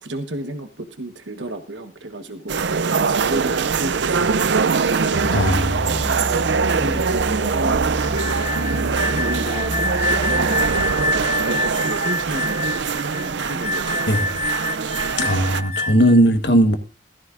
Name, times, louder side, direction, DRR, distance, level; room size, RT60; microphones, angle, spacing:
voice 1, 0.0-5.3 6.8-8.1 9.1-14.3, right 1 dB, 90° right, 1.3 m, -32 dB
sound 1, 2.5-15.6, right 5 dB, 70° right, 0.5 m, -23 dB
Musical instrument, 5.1-10.7, equal, 10° left, 1.7 m, -29 dB
voice 2, 5.3-6.0 14.1-14.2 15.2-16.8, equal, 70° left, 1.4 m, -18 dB
sound 2, 8.0-16.2, left 2 dB, 40° left, 0.7 m, -27 dB
16.0 x 14.0 x 2.5 m
head